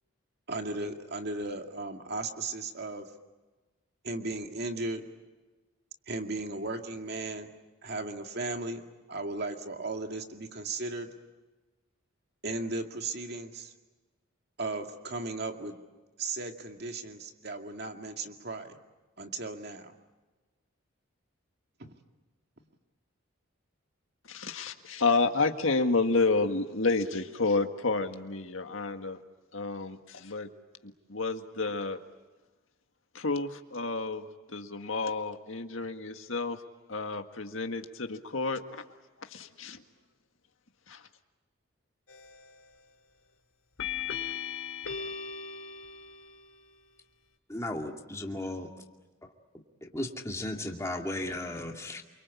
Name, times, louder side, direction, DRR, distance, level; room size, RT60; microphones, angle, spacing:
voice 1, 0.5-3.1 4.0-5.0 6.1-7.5 7.8-11.1 12.4-13.7 14.6-15.8 16.2-18.8 19.2-19.9 21.8-21.9, right 2 dB, 50° right, 4 dB, 2.3 m, -36 dB
voice 2, 24.2-29.2 29.5-30.5 30.8-32.0 33.1-36.6 36.9-38.8 39.2-39.8 40.9-41.1, left 3 dB, 70° left, 6 dB, 1.8 m, -30 dB
sound 1, 42.1-42.6 43.8-46.6, left 7 dB, 85° left, 2.7 m, -38 dB
voice 3, 47.5-48.8 49.8-52.0, left 1 dB, 15° left, 1 dB, 2.4 m, -35 dB
28.0 x 24.5 x 8.5 m, 1.2 s
head